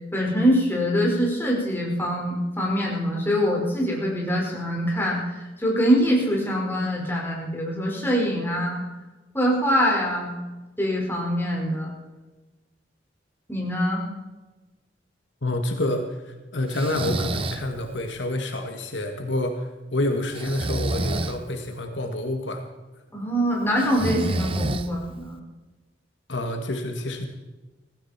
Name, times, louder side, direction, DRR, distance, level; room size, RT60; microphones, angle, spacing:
voice 1, 0.1-5.2 5.6-8.8 9.3-10.3 10.8-11.9 13.5-14.0 23.1-25.4, equal, 10° left, -3 dB, 5.1 m, -24 dB
voice 2, 15.4-22.6 26.3-27.3, left 1 dB, 75° left, 4 dB, 1.9 m, -28 dB
Breathing, 16.7-17.7 20.3-21.4 23.8-25.2, right 2 dB, 30° right, 0.8 m, -28 dB
17.0 x 16.5 x 4.4 m, 1.2 s
head